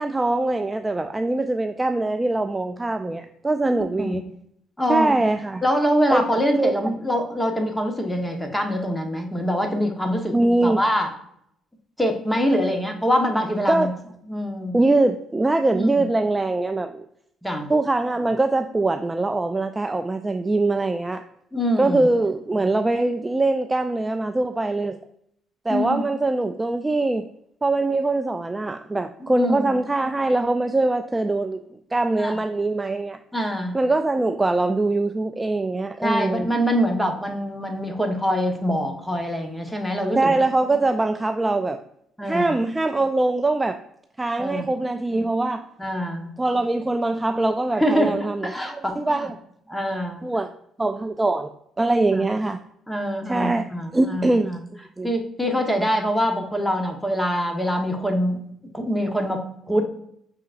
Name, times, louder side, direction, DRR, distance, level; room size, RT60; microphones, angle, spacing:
voice 1, 0.0-4.2 4.9-5.6 6.1-6.7 10.3-10.8 13.7-13.9 14.7-17.1 17.7-21.2 21.8-25.0 25.7-27.3 27.6-31.6 31.9-33.2 33.7-36.5 40.2-41.8 42.3-43.8 44.2-45.7 46.4-49.4 50.2-50.5 50.8-52.6 53.3-53.6 53.9-54.5 55.0-55.1, right 2 dB, 20° right, 8 dB, 0.3 m, -22 dB
voice 2, 4.8-5.2 5.6-11.1 12.0-13.9 14.3-14.8 15.7-16.0 17.4-17.7 21.5-22.1 25.7-26.1 29.2-29.7 32.2-32.4 33.3-33.8 36.0-40.4 42.2-42.5 44.4-44.7 45.8-46.3 47.7-49.3 49.7-50.2 52.1-52.3 52.9-54.6 55.0-58.4 58.7-59.9, equal, 5° left, 3 dB, 1.1 m, -24 dB
5.8 x 3.7 x 2.5 m, 0.72 s
supercardioid pair, 65°, 0 cm